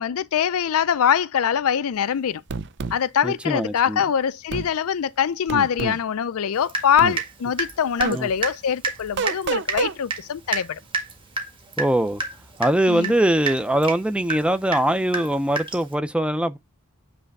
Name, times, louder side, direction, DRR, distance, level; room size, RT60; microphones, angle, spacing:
voice 1, 0.0-2.4 2.9-10.8 12.9-13.1, left 8 dB, 70° left, 0.4 m, -23 dB
sound 1, 2.5-3.0 4.5-4.7 5.5-6.0 7.0-7.2 8.0-8.2 9.2-9.9, right 5 dB, 50° right, 0.6 m, -27 dB
voice 2, 3.2-4.0 8.1-8.3 11.8-12.2 12.6-16.6, right 1 dB, 5° right, 0.5 m, -22 dB
Water tap faucet / Drip, 6.7-7.3 7.6-15.9, right 3 dB, 25° right, 1.7 m, -30 dB
8.9 x 3.3 x 4.0 m
head